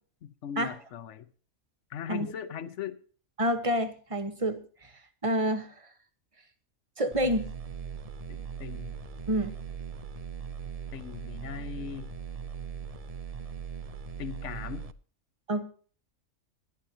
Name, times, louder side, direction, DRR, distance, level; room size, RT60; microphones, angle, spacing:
voice 1, 0.2-1.3 1.9-3.0 8.3-9.0 10.9-12.1 14.2-14.9, left 9 dB, 65° left, 1.1 m, -39 dB
voice 2, 3.4-4.9 5.2-5.7 7.0-7.5 9.3-9.5 15.5-15.6, right 1 dB, 25° right, 1.1 m, -28 dB
sound 1, 7.1-14.9, right 7 dB, 45° right, 0.4 m, -39 dB
20.5 x 10.5 x 2.8 m
omnidirectional pair, 1.4 m